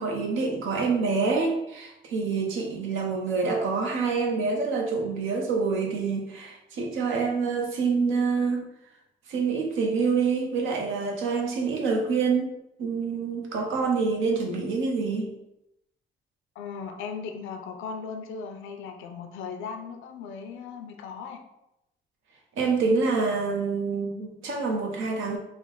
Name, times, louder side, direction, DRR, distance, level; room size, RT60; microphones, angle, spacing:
voice 1, 0.0-8.6 9.3-12.5 12.8-15.3 22.6-25.4, right 4 dB, 85° right, 1 dB, 0.7 m, -26 dB
voice 2, 16.6-21.4, left 5 dB, 85° left, 5 dB, 0.5 m, -37 dB
3.3 x 2.1 x 3.8 m, 0.86 s
cardioid pair, 90°, 20 cm